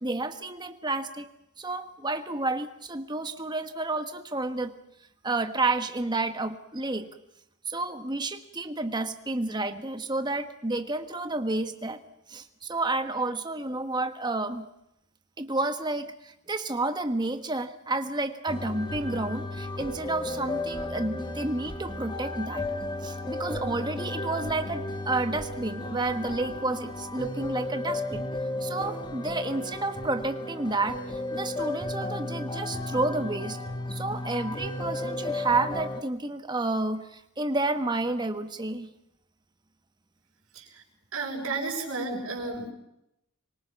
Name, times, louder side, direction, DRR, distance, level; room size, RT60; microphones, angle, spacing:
voice 1, 0.0-1.3 1.6-4.7 5.2-7.1 7.7-12.0 12.3-14.7 15.4-22.6 23.0-28.3 28.6-31.0 31.3-33.6 33.9-38.9, right 2 dB, 20° right, 8 dB, 1.4 m, -30 dB
sound 1, 18.5-36.0, left 2 dB, 20° left, 1.3 m, -34 dB
voice 2, 41.1-42.7, right 3 dB, 75° right, -3 dB, 6.4 m, -32 dB
26.0 x 23.5 x 5.9 m, 0.82 s
head